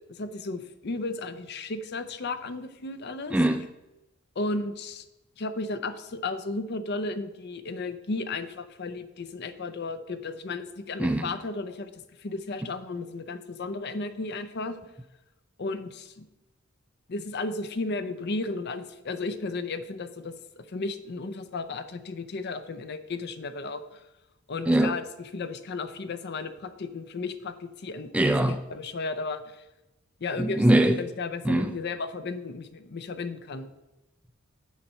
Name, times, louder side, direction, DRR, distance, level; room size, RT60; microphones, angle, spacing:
voice 1, 0.1-3.4 4.4-5.0 5.4-11.9 12.2-14.8 15.6-16.3 17.1-23.8 24.5-28.1 28.7-29.6 30.2-30.7 31.0-33.7, left 3 dB, 50° left, 0.6 m, -34 dB
voice 2, 3.3-3.6 11.0-11.3 24.7-24.9 28.1-28.6 30.4-31.0 31.4-31.7, right 1 dB, 5° right, 0.3 m, -22 dB
7.2 x 4.3 x 6.6 m
head